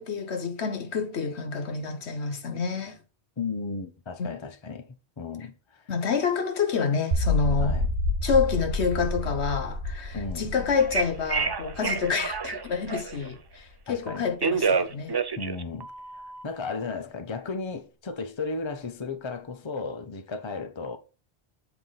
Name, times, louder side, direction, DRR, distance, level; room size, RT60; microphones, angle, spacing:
voice 1, 0.0-3.0 4.2-4.3 5.9-7.8 8.2-15.2, left 5 dB, 85° left, 1.4 m, -28 dB
voice 2, 3.4-4.9 5.2-5.9 7.6-7.9 10.1-10.5 13.9-14.3 15.4-21.0, left 4 dB, 30° left, 0.8 m, -35 dB
sound 1, 7.1-13.2, left 1 dB, 80° right, 1.6 m, -29 dB
Telephone, 10.8-13.3 14.1-16.4, right 5 dB, 40° right, 0.3 m, -28 dB
7.6 x 4.4 x 4.0 m
omnidirectional pair, 1.1 m